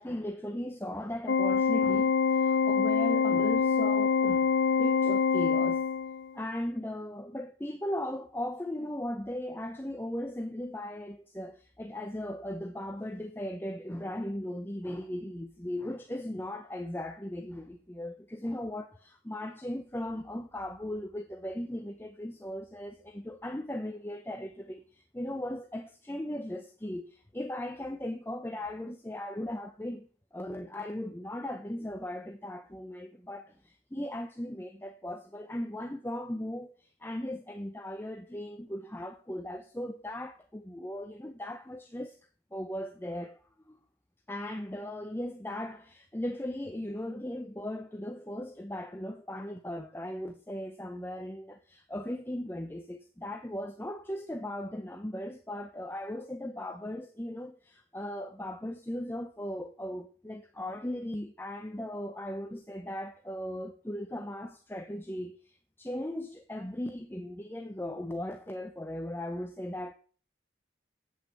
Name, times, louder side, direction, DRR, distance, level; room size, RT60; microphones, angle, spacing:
voice 1, 0.0-4.5 4.8-5.8 6.3-42.2 42.5-43.8 44.3-69.9, left 1 dB, 15° left, 0.7 m, -38 dB
Organ, 1.3-6.3, left 6 dB, 90° left, 0.6 m, -25 dB
8.3 x 8.1 x 7.8 m
head